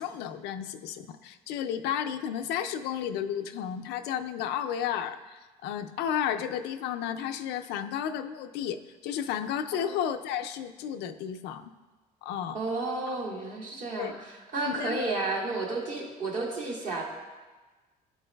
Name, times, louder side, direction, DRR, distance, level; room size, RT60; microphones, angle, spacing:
voice 1, 0.0-11.7 12.2-12.6 14.0-14.1 14.7-15.0, left 9 dB, 90° left, 7 dB, 0.4 m, -32 dB
voice 2, 12.5-17.0, right 3 dB, 50° right, -4 dB, 1.8 m, -32 dB
11.5 x 4.5 x 2.2 m, 1.2 s
cardioid pair, 110°, 17 cm